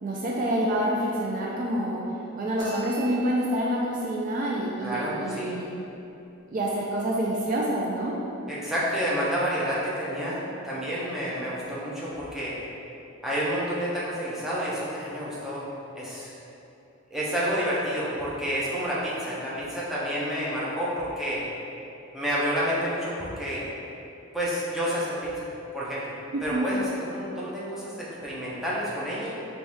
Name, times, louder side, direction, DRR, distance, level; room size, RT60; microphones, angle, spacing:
voice 1, 0.0-2.0 2.4-5.7 6.5-8.2 26.3-26.7, right 1 dB, 40° right, -3 dB, 0.3 m, -27 dB
sound 1, 2.6-3.8, right 1 dB, 60° right, 1.0 m, -40 dB
voice 2, 4.8-5.6 8.5-12.5 13.2-15.7 16.0-16.3 17.1-21.4 22.1-23.6 24.3-25.5 25.7-26.1 26.4-29.3, equal, ahead, -9 dB, 0.7 m, -29 dB
4.5 x 2.7 x 3.4 m, 2.9 s
head